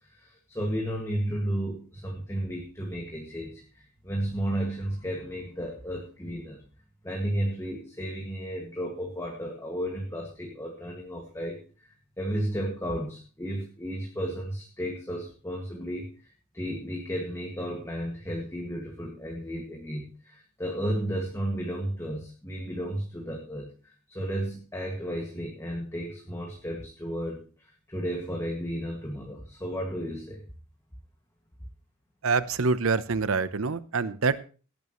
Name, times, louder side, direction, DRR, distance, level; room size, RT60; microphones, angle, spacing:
voice 1, 0.0-6.6 7.0-11.9 12.2-30.4, equal, 15° left, 0 dB, 2.0 m, -33 dB
voice 2, 32.2-34.4, right 4 dB, 75° right, 15 dB, 0.8 m, -26 dB
17.5 x 10.5 x 3.1 m, 0.37 s
head